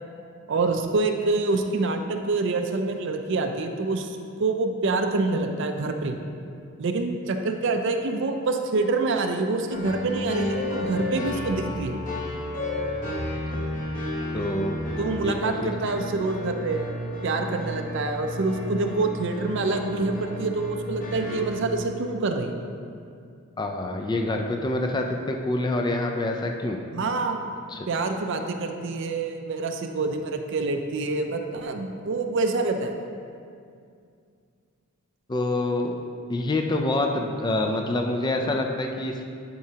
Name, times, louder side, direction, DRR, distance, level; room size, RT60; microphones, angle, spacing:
voice 1, 0.5-6.2 6.8-12.0 15.0-16.9 17.2-22.5 26.9-27.4 27.9-32.9, right 3 dB, 60° right, 5 dB, 0.5 m, -26 dB
sound 1, 9.7-21.5, left 1 dB, 40° left, 1.0 m, -32 dB
voice 2, 14.3-14.8 15.2-15.7 23.6-26.8 27.7-27.9 35.3-35.9 36.3-39.2, left 2 dB, 20° left, 3 dB, 0.3 m, -26 dB
10.5 x 4.7 x 2.8 m, 2.3 s
head